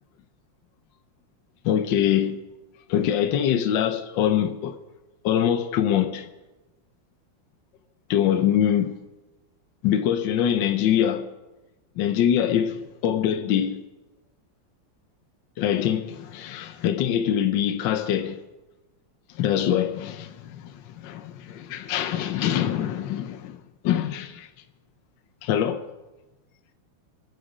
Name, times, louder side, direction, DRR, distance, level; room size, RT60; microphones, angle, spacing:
voice 1, 1.6-2.4 2.9-4.8 5.2-6.3 8.1-9.0 9.8-11.3 12.0-13.8 15.6-18.4 19.3-24.5 25.4-25.9, left 10 dB, 75° left, 1.4 m, -24 dB
25.5 x 8.5 x 4.9 m
omnidirectional pair, 2.1 m